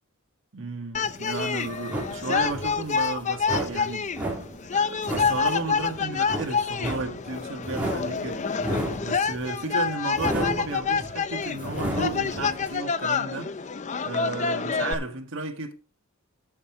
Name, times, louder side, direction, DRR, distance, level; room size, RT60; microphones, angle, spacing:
voice 1, 0.5-4.1 4.7-8.5 9.0-13.6 14.0-15.7, right 3 dB, 65° right, 1.7 m, -33 dB
sound 1, 0.9-14.9, left 5 dB, 35° left, 0.5 m, -28 dB
sound 2, 1.0-12.7, right 1 dB, 5° right, 2.8 m, -34 dB
11.5 x 6.7 x 4.5 m
head